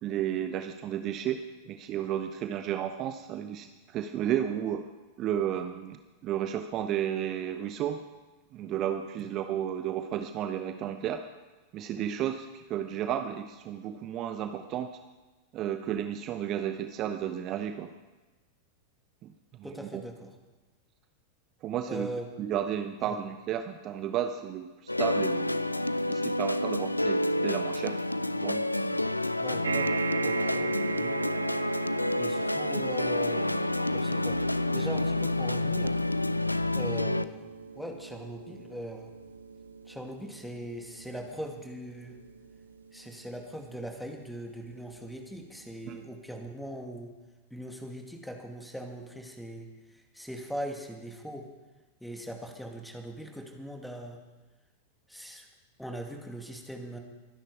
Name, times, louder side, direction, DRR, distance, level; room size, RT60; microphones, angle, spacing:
voice 1, 0.0-4.9 5.2-8.0 8.5-11.2 11.7-14.9 15.5-17.9 19.2-19.3 19.6-20.0 21.6-22.1 22.4-25.6 26.1-28.0 28.3-28.7 45.9-46.0, right 10 dB, 35° right, 8 dB, 0.8 m, -33 dB
voice 2, 19.6-20.3 21.9-22.3 23.0-23.2 29.4-29.9 30.2-31.3 32.2-33.5 33.9-34.4 34.7-36.0 36.7-37.5 37.7-39.1 39.9-42.2 42.9-47.1 47.5-51.5 52.0-54.2 55.1-55.5 55.8-57.0, equal, ahead, 3 dB, 2.3 m, -40 dB
sound 1, 24.9-37.2, left 1 dB, 85° left, 0.4 m, -29 dB
sound 2, 29.6-44.2 44.9-45.0 45.3-45.4, right 4 dB, 70° right, 0.7 m, -37 dB
23.5 x 10.0 x 4.8 m, 1.2 s
figure-of-eight pair, 90°, 0 cm